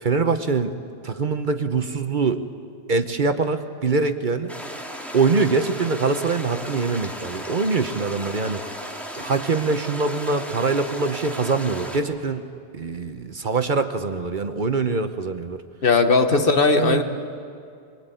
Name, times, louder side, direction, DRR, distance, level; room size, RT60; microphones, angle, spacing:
voice 1, 0.0-0.7 1.0-2.4 2.9-4.5 5.1-8.6 9.2-12.4 12.7-15.6 16.3-16.5 16.7-17.0, right 4 dB, 50° right, 9 dB, 1.0 m, -23 dB
sound 1, 4.5-12.0, equal, ahead, 2.3 m, -35 dB
voice 2, 15.8-17.0, left 3 dB, 55° left, 7 dB, 1.4 m, -18 dB
22.0 x 22.0 x 9.1 m, 2.4 s
omnidirectional pair, 1.1 m